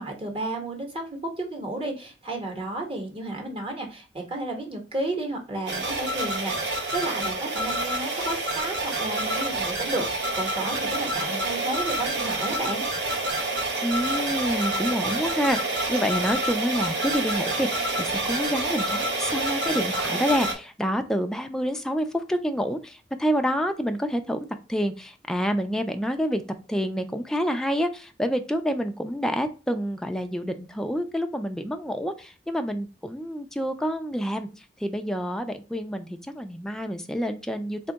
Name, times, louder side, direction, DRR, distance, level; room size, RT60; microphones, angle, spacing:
voice 1, 0.0-12.9, right 2 dB, 30° right, 2 dB, 1.0 m, -32 dB
sound 1, 5.7-20.5, right 2 dB, 80° right, 1.0 m, -28 dB
voice 2, 13.8-26.4 26.7-34.5 34.8-37.8, equal, 5° left, 5 dB, 0.3 m, -28 dB
3.5 x 2.2 x 3.9 m, 0.33 s
head